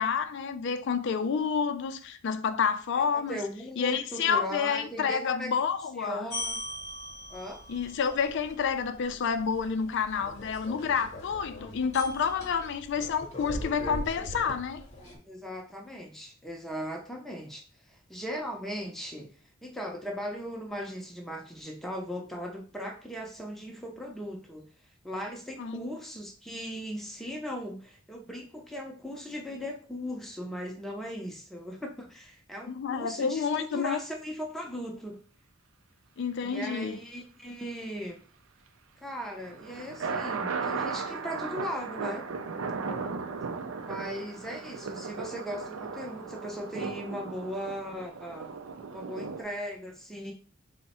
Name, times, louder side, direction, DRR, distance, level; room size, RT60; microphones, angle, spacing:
voice 1, 0.0-3.4 3.8-6.3 7.7-14.8 25.6-25.8 32.7-34.0 36.2-37.0, left 6 dB, 60° left, 0.4 m, -29 dB
voice 2, 3.1-5.5 6.0-6.6 7.3-7.6 15.3-17.6 17.9-19.3 19.6-24.6 25.0-35.2 36.4-38.2 39.0-42.3 43.8-48.5 48.9-50.3, equal, ahead, 0.6 m, -38 dB
sound 1, 6.3-15.2, left 1 dB, 35° left, 0.9 m, -40 dB
sound 2, 39.2-49.4, right 5 dB, 70° right, 0.4 m, -36 dB
3.4 x 2.1 x 4.1 m
head